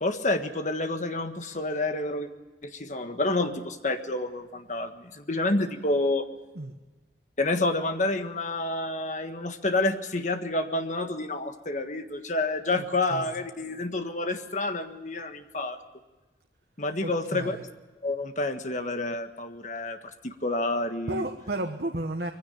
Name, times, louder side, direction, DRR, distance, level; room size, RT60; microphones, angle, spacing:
voice 1, 0.0-2.3 2.6-6.3 7.4-15.8 16.8-17.6 18.0-20.0 20.2-21.2, left 2 dB, 45° left, 7 dB, 1.5 m, -29 dB
voice 2, 17.0-17.6 21.1-22.3, right 1 dB, 60° right, 5 dB, 1.3 m, -33 dB
22.0 x 16.0 x 9.0 m, 1.2 s
head